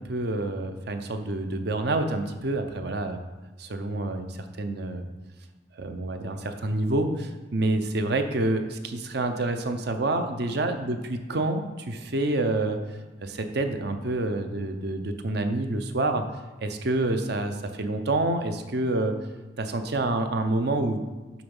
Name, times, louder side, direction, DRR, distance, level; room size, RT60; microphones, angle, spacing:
voice 1, 0.0-3.2 3.6-5.1 5.8-12.8 13.2-16.2 16.6-19.1 19.6-21.0, right 2 dB, 60° right, 7 dB, 0.7 m, -27 dB
9.2 x 4.0 x 5.4 m, 1.2 s
head